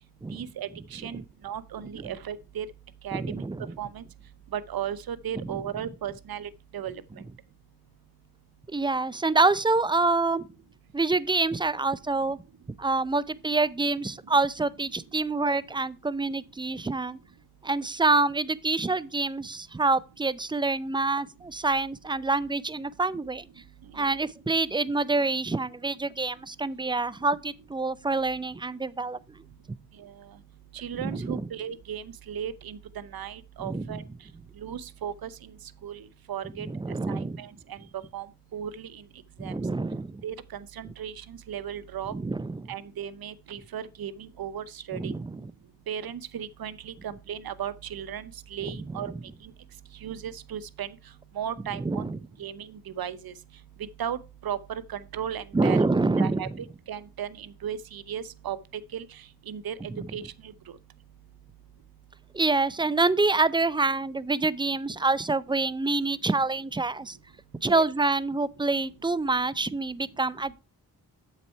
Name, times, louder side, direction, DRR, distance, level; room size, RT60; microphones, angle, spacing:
voice 1, 0.3-2.7 3.0-3.4 3.8-4.0 4.5-7.0 24.0-24.1 30.0-30.1 30.7-34.0 34.6-35.3 35.8-36.7 37.1-37.8 38.1-38.3 38.5-39.0 39.4-39.5 40.2-42.1 42.7-45.1 45.9-49.1 49.4-49.5 50.0-50.9 51.3-52.1 52.4-53.3 54.0-55.8 56.2-58.6 58.9-59.8 60.1-60.5 67.7-67.8, right 9 dB, 70° right, 0.8 m, -36 dB
voice 2, 3.1-3.7 5.4-5.6 8.7-10.5 10.9-12.4 12.8-17.2 17.6-23.5 23.9-29.4 31.0-31.5 33.6-34.0 36.6-37.4 39.4-40.2 42.1-42.7 44.9-45.5 48.6-49.2 51.7-52.2 55.5-56.6 59.9-60.1 62.3-67.2 67.6-70.6, right 3 dB, 15° right, 0.5 m, -27 dB
7.6 x 6.0 x 4.5 m
cardioid pair, 65°, 37 cm